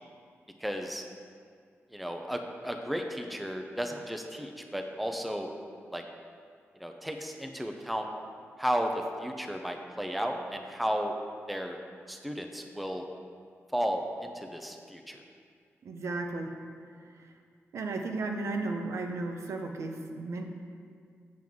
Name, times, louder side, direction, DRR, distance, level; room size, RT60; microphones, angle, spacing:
voice 1, 0.6-1.0 1.9-5.5 5.9-6.0 6.8-8.1 8.6-11.2 11.5-11.8 12.1-13.0 13.7-15.2, equal, ahead, 3 dB, 0.4 m, -33 dB
voice 2, 15.8-16.5 17.0-17.3 17.7-20.4, right 3 dB, 75° right, 3 dB, 0.7 m, -34 dB
7.6 x 7.4 x 3.6 m, 2.2 s
wide cardioid pair, 180°, 5 cm